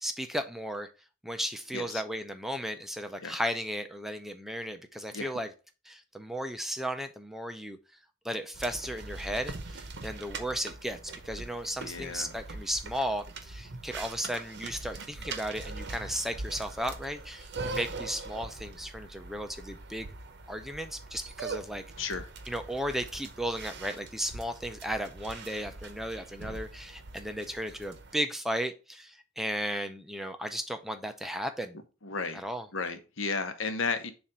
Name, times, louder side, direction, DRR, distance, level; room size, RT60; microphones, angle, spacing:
voice 1, 0.0-0.9 1.2-5.5 5.9-7.8 8.2-11.0 11.2-20.1 20.5-21.8 22.5-31.8 32.3-32.7, equal, ahead, 7 dB, 0.5 m, -35 dB
sound 1, 8.5-28.1, right 3 dB, 60° right, 0.8 m, -42 dB
voice 2, 11.8-12.3 22.0-22.3 32.0-32.4 32.7-34.1, left 4 dB, 75° left, 8 dB, 1.0 m, -33 dB
7.2 x 2.5 x 5.3 m, 0.32 s
head